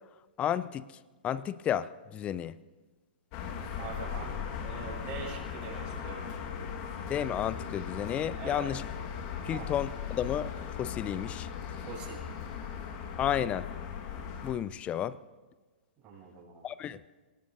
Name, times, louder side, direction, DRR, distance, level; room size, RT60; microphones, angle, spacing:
voice 1, 0.4-0.9 1.2-2.5 7.1-8.8 9.4-10.5 10.8-11.5 13.2-13.7 14.4-15.2 16.6-17.0, left 10 dB, 25° left, 17 dB, 0.5 m, -32 dB
sound 1, 3.3-14.5, left 7 dB, 40° left, 1.7 m, -38 dB
voice 2, 3.8-6.2 8.4-8.7 9.4-9.7 11.8-12.2 16.0-16.6, right 5 dB, 30° right, -5 dB, 6.8 m, -43 dB
27.5 x 18.0 x 2.7 m, 1.3 s
figure-of-eight pair, 115°, 5 cm